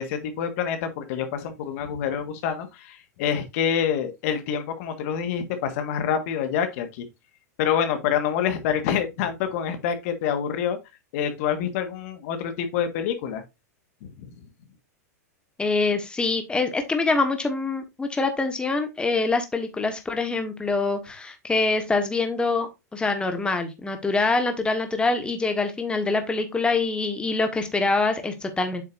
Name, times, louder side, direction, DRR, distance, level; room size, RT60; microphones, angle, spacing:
voice 1, 0.0-7.1 7.6-10.8 11.1-13.4 14.0-14.3, left 8 dB, 60° left, 1.7 m, -27 dB
voice 2, 15.6-28.8, left 3 dB, 10° left, 1.4 m, -25 dB
7.9 x 6.6 x 2.6 m
hypercardioid pair, 115°, 9 cm